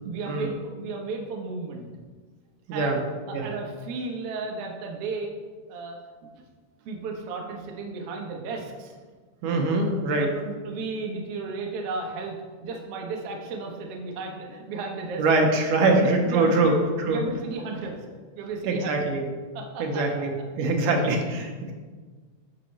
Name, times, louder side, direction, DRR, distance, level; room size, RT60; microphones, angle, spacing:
voice 1, 0.0-1.9 2.7-5.3 5.7-6.0 6.8-8.9 9.6-9.9 10.2-15.2 15.8-18.0 18.3-19.1 19.5-20.0, right 3 dB, 60° right, 0 dB, 1.7 m, -34 dB
voice 2, 2.7-3.0 3.3-3.5 9.4-10.3 15.2-16.7 17.0-17.2 18.7-19.3 19.8-21.7, right 3 dB, 80° right, 2 dB, 2.4 m, -23 dB
9.0 x 6.7 x 3.2 m, 1.4 s
omnidirectional pair, 3.6 m